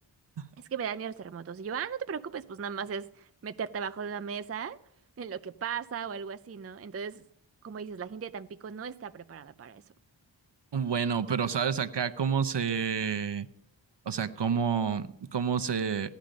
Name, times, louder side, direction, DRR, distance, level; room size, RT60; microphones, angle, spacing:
voice 1, 0.6-4.8 5.2-7.2 7.6-9.8, right 7 dB, 35° right, 11 dB, 0.4 m, -37 dB
voice 2, 10.7-13.5 14.1-16.1, right 6 dB, 60° right, 10 dB, 0.8 m, -29 dB
16.5 x 10.5 x 5.2 m, 0.73 s
wide cardioid pair, 75°, 46 cm